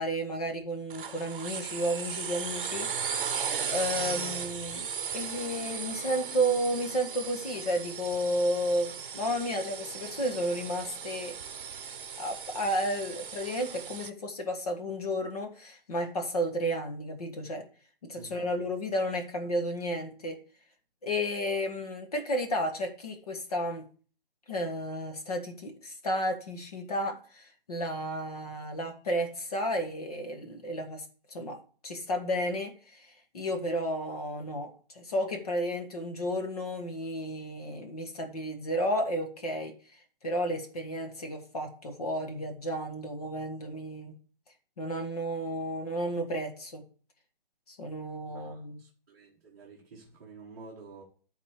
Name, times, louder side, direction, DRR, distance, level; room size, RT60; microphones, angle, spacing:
voice 1, 0.0-3.2 3.7-4.9 5.1-11.3 12.2-17.6 18.0-20.4 21.0-23.9 24.5-31.6 31.8-39.7 40.2-44.2 44.8-46.8 47.7-48.8, equal, 40° left, 1.5 m, -32 dB
sound 1, 0.9-14.1, right 7 dB, 60° right, 0.9 m, -37 dB
voice 2, 18.2-18.5 48.3-51.0, right 4 dB, 20° right, 1.3 m, -49 dB
11.0 x 4.1 x 6.6 m
hypercardioid pair, 180°, 29 cm